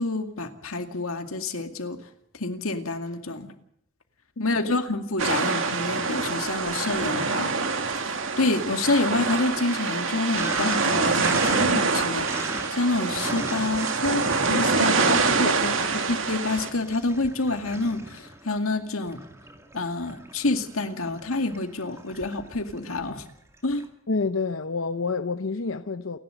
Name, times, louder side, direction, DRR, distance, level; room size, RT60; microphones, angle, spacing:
voice 1, 0.0-2.0 2.3-3.5 4.4-7.5 8.0-12.3 12.7-15.2 16.3-19.2 19.7-23.2 23.6-23.8, left 2 dB, 90° left, 2.3 m, -28 dB
voice 2, 4.4-4.8 15.1-16.1 24.1-26.2, left 3 dB, 70° left, 0.7 m, -29 dB
sound 1, 5.2-16.7, right 4 dB, 70° right, 2.3 m, -25 dB
Sink (filling or washing), 6.5-7.4 7.8-23.9, right 1 dB, 15° right, 2.1 m, -40 dB
28.5 x 11.5 x 8.0 m
head